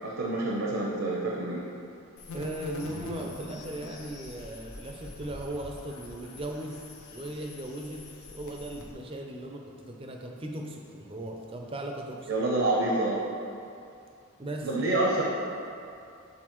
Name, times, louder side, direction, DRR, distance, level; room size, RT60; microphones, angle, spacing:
voice 1, 0.0-1.6 12.3-13.2 14.6-15.2, right 2 dB, 65° right, -4 dB, 0.6 m, -27 dB
sound 1, 2.2-8.9, left 2 dB, 85° left, 0.7 m, -44 dB
voice 2, 2.3-6.8 7.1-8.0 8.3-12.3 14.4-15.0, right 1 dB, 25° right, 1 dB, 0.4 m, -38 dB
7.8 x 4.0 x 3.0 m, 2.6 s
head